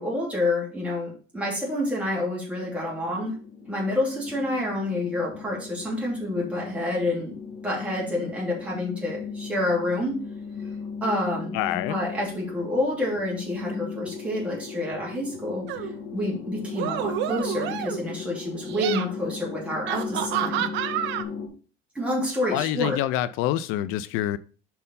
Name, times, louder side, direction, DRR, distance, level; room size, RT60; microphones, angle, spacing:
voice 1, 0.0-3.4 3.7-7.3 7.6-10.2 11.0-11.6 11.9-15.9 16.1-20.7 21.9-23.0, left 1 dB, 5° right, 2.7 m, -28 dB
sound 1, 2.6-21.5, left 6 dB, 65° left, 1.8 m, -37 dB
voice 2, 11.5-12.0 22.5-24.4, left 13 dB, 90° left, 0.5 m, -26 dB
sound 2, 15.7-15.9 16.7-18.1 18.6-19.0 19.9-21.2, right 11 dB, 65° right, 0.7 m, -29 dB
5.3 x 4.5 x 5.4 m
cardioid pair, 170°, 21 cm